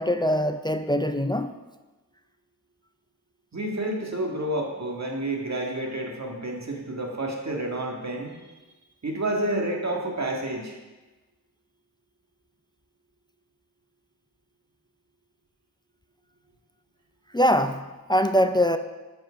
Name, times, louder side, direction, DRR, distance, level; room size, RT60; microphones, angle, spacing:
voice 1, 0.0-1.6 17.3-18.8, equal, 10° left, 0.4 m, -23 dB
voice 2, 3.5-8.4 9.0-10.8, right 1 dB, 45° right, 1.7 m, -29 dB
7.6 x 4.9 x 5.8 m
cardioid pair, 45°, 37 cm